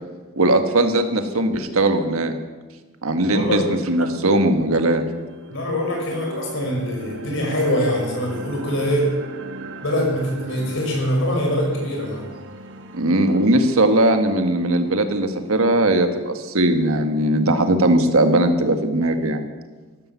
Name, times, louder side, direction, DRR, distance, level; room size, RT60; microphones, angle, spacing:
voice 1, 0.4-2.3 3.0-5.0 12.9-19.4, right 1 dB, 80° right, 7 dB, 1.5 m, -19 dB
voice 2, 3.3-3.7 5.5-9.1 9.8-12.3, equal, 60° left, 0 dB, 5.1 m, -23 dB
sound 1, 3.5-3.6 4.1-16.1, right 1 dB, 55° right, 1.2 m, -38 dB
14.5 x 12.0 x 7.0 m, 1.3 s
head